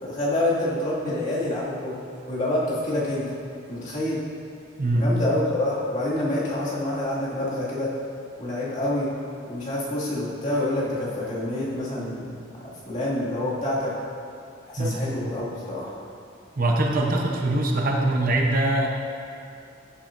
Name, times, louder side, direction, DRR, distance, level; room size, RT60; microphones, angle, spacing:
voice 1, 0.0-3.4 3.7-4.2 4.9-7.9 8.4-9.1 9.5-13.9 14.7-16.0, left 1 dB, 40° left, -8 dB, 2.2 m, -27 dB
voice 2, 4.8-5.1 14.8-15.0 16.6-18.9, right 1 dB, 45° right, 0 dB, 0.8 m, -22 dB
15.0 x 7.5 x 2.6 m, 2.5 s
head